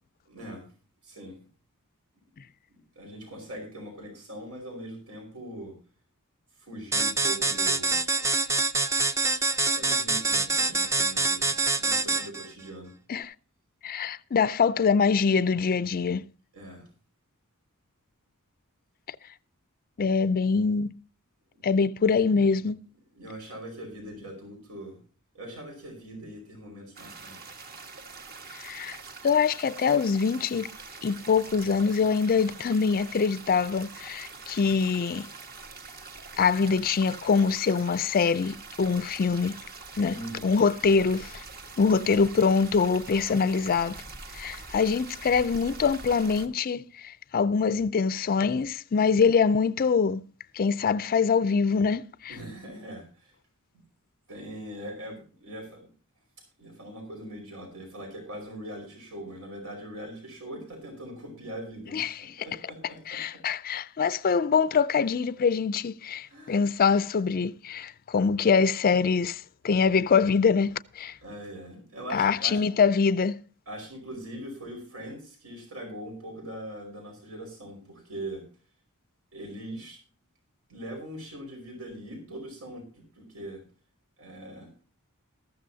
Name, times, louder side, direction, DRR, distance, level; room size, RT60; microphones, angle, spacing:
voice 1, 0.3-0.7 1.0-1.4 2.9-5.7 6.6-8.0 9.7-12.9 16.5-16.9 23.1-25.0 25.3-27.7 40.1-40.5 52.3-53.3 54.3-55.9 56.6-63.2 66.3-66.7 71.2-72.6 73.7-78.4 79.3-80.0 80.7-83.6 84.2-84.7, right 1 dB, 85° right, 4.9 m, -41 dB
sound 1, 6.9-12.5, right 3 dB, 15° right, 0.5 m, -25 dB
voice 2, 13.8-16.2 20.0-21.0 21.6-22.8 28.6-29.0 29.2-30.7 31.0-35.3 36.4-39.6 40.0-40.1 40.4-41.4 41.8-44.0 44.3-50.2 50.5-52.4 61.9-62.3 63.1-71.1 72.1-73.4, left 5 dB, 40° left, 0.4 m, -24 dB
sound 2, 27.0-46.5, right 4 dB, 45° right, 1.4 m, -44 dB
14.0 x 14.0 x 2.7 m
head